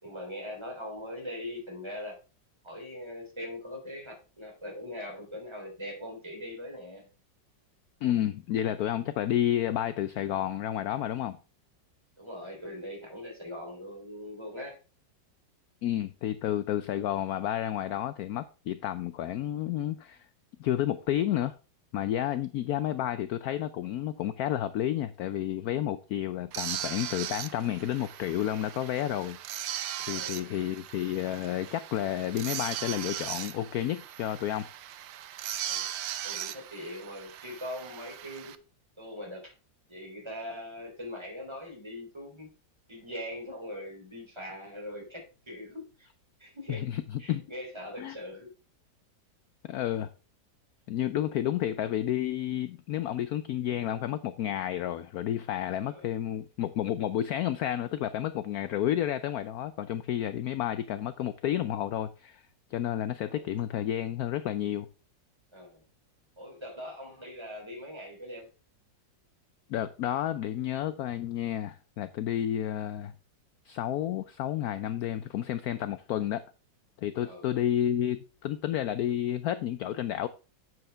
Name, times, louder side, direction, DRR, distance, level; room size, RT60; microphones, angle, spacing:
voice 1, 0.0-2.2 2.6-7.1 12.2-14.8 30.1-30.5 35.6-35.9 36.2-38.6 39.0-39.5 39.9-42.5 42.9-46.1 46.4-46.9 47.2-48.5 55.8-56.1 63.2-63.5 65.5-65.8 66.4-68.5 77.2-77.5, left 1 dB, 15° right, 3.6 m, -41 dB
voice 2, 8.0-11.4 15.8-20.3 20.6-21.6 21.9-29.4 30.1-34.7 46.7-47.5 48.0-48.2 49.7-50.1 50.9-64.9 69.7-73.1 73.7-76.4 77.0-80.3, left 11 dB, 70° left, 0.9 m, -31 dB
sound 1, 26.5-38.6, right 11 dB, 90° right, 1.5 m, -38 dB
9.4 x 7.8 x 3.4 m
omnidirectional pair, 2.0 m